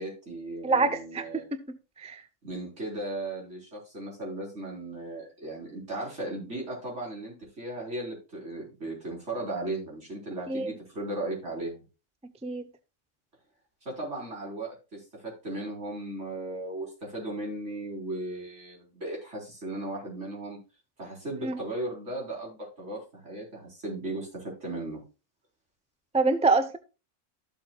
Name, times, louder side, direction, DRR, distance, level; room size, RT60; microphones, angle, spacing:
voice 1, 0.0-1.4 2.4-11.8 13.8-20.6 21.0-25.0, right 2 dB, 65° right, 4.6 m, -36 dB
voice 2, 0.6-1.3 1.5-2.2 10.5-10.7 12.4-12.6 21.4-21.5 26.1-26.8, right 3 dB, 10° right, 0.4 m, -26 dB
14.0 x 7.4 x 2.3 m
omnidirectional pair, 1.3 m